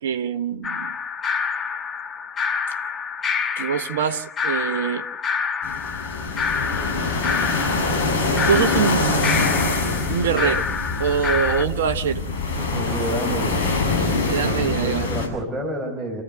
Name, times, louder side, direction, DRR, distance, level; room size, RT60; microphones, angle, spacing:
voice 1, 0.0-1.0 3.6-5.1 7.5-10.7 11.0-12.3 14.0-15.1, right 8 dB, 60° right, 8 dB, 1.1 m, -25 dB
sound 1, 0.6-11.7, left 6 dB, 25° left, 1.3 m, -27 dB
sound 2, 5.6-15.3, left 3 dB, 55° left, 7.7 m, -24 dB
voice 2, 12.6-13.8 14.4-16.2, right 1 dB, 5° right, -2 dB, 5.6 m, -29 dB
29.5 x 14.5 x 7.8 m, 0.76 s
figure-of-eight pair, 90°, 0 cm